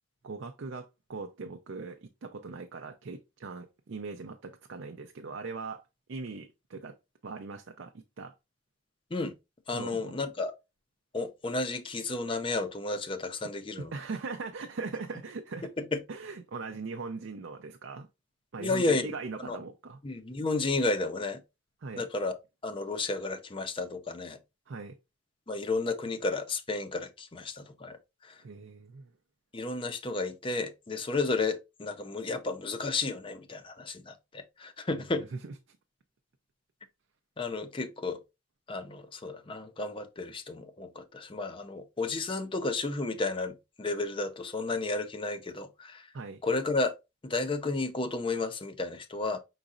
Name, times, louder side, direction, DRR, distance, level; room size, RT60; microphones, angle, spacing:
voice 1, 0.2-5.8 6.1-7.0 7.2-8.3 9.7-10.2 13.8-15.7 16.1-18.1 18.5-20.0 21.8-22.1 24.7-25.0 28.4-29.1 34.9-35.8 46.1-46.4, right 4 dB, 75° right, 0.5 m, -40 dB
voice 2, 9.7-10.5 11.1-13.9 15.8-16.0 18.6-19.1 19.4-19.6 20.0-21.4 22.0-22.4 22.6-24.4 25.5-28.0 28.2-28.4 29.5-35.2 37.4-38.2 38.7-46.1 46.4-46.9 47.2-49.4, left 3 dB, 25° left, 0.5 m, -32 dB
5.1 x 3.9 x 2.4 m
head